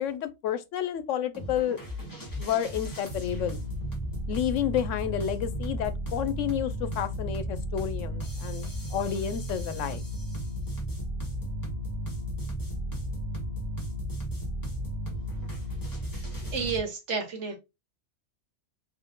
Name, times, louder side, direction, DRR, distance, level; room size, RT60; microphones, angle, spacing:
voice 1, 0.0-1.8 2.4-3.6 4.3-10.0, left 10 dB, 80° left, 0.9 m, -30 dB
sound 1, 1.3-16.8, equal, 15° left, 1.2 m, -34 dB
voice 2, 16.5-17.6, right 5 dB, 70° right, 1.4 m, -30 dB
3.6 x 2.6 x 3.8 m
omnidirectional pair, 1.3 m